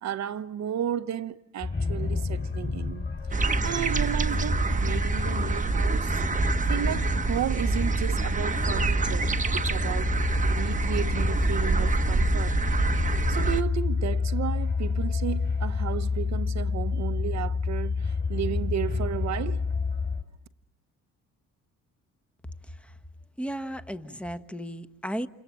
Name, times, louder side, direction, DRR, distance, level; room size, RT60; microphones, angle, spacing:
voice 1, 0.0-3.1 3.4-6.2 6.6-10.2 10.5-12.6 13.3-19.6, right 10 dB, 65° right, 1.0 m, -33 dB
sound 1, 1.6-20.2, left 4 dB, 35° left, 5.5 m, -29 dB
sound 2, 3.3-13.6, right 4 dB, 25° right, 1.1 m, -27 dB
voice 2, 22.6-23.0 23.4-25.3, equal, 5° left, 1.2 m, -35 dB
28.5 x 28.0 x 7.4 m
cardioid pair, 90°, 30 cm